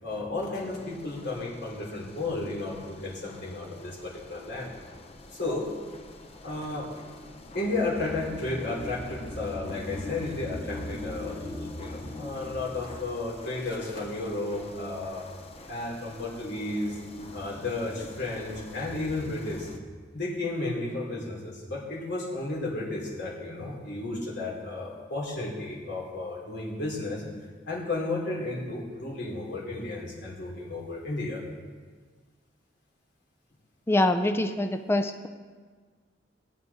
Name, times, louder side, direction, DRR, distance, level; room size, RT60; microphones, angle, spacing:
voice 1, 0.0-4.7 5.3-5.7 6.4-6.9 7.5-15.2 15.7-17.0 17.3-19.7 20.1-27.2 27.7-31.4, left 2 dB, 65° left, -4 dB, 3.1 m, -33 dB
sound 1, 0.6-19.8, left 1 dB, 35° left, 1.0 m, -43 dB
voice 2, 33.9-35.3, left 1 dB, 15° left, 7 dB, 0.4 m, -25 dB
18.0 x 9.2 x 4.1 m, 1.5 s
head